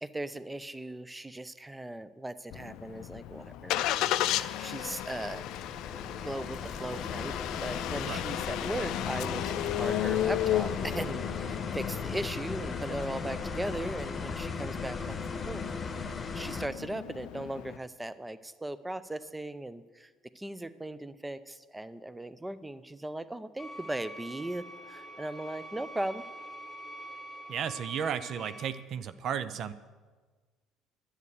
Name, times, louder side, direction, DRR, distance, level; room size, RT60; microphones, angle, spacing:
voice 1, 0.0-3.9 4.6-5.5 6.2-7.3 7.6-15.6 16.3-26.2, right 1 dB, 10° right, 15 dB, 0.6 m, -38 dB
Engine starting, 2.5-17.8, left 13 dB, 65° left, 0.4 m, -34 dB
sound 1, 4.7-16.7, left 4 dB, 30° left, 1.1 m, -38 dB
sound 2, 23.6-28.7, right 1 dB, 10° left, 1.5 m, -45 dB
voice 2, 27.5-29.7, right 8 dB, 55° right, 13 dB, 0.5 m, -34 dB
11.0 x 8.0 x 8.1 m, 1.4 s
hypercardioid pair, 55°, 0 cm